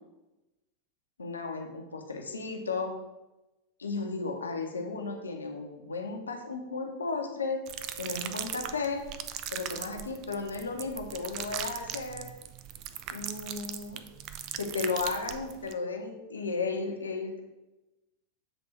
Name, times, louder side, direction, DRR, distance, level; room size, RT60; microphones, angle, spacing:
voice 1, 1.2-3.0 3.8-7.6 8.0-9.0 9.5-12.3 13.1-14.0 14.6-17.4, left 4 dB, 75° left, 3 dB, 0.9 m, -34 dB
sound 1, 7.7-15.7, right 10 dB, 40° right, 0.4 m, -39 dB
7.8 x 3.4 x 4.4 m, 1.0 s
figure-of-eight pair, 90°, 0 cm